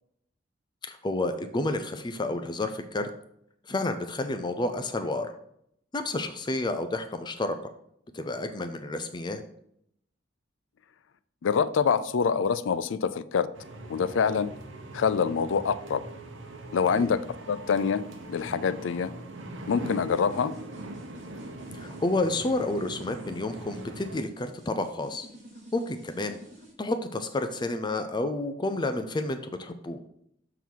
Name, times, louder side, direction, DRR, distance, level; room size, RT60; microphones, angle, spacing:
voice 1, 0.8-3.1 3.7-5.3 5.9-7.6 8.1-9.4 17.0-17.1 21.8-25.3 25.7-26.4 26.8-30.0, left 2 dB, 25° left, 8 dB, 0.5 m, -30 dB
voice 2, 11.4-13.5 13.9-14.5 14.9-16.0 16.7-17.2 17.5-18.0 18.3-19.1 19.7-20.6, left 6 dB, 85° left, 15 dB, 0.4 m, -25 dB
sound 1, 13.5-24.2, right 2 dB, 85° right, 0.8 m, -42 dB
sound 2, 19.9-26.7, right 1 dB, 40° right, 2.0 m, -50 dB
6.9 x 3.9 x 4.6 m, 0.72 s
head